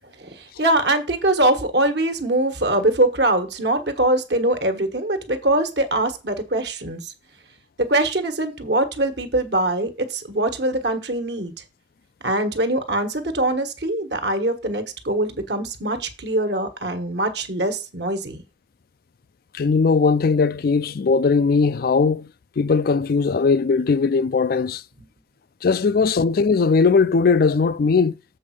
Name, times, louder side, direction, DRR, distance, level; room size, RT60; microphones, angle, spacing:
voice 1, 0.2-7.1 7.8-11.5 12.2-18.4, right 1 dB, 60° right, 1.4 m, -22 dB
voice 2, 19.5-22.3 22.6-24.8 25.6-28.1, left 4 dB, 50° left, 0.4 m, -19 dB
7.6 x 4.2 x 6.4 m
head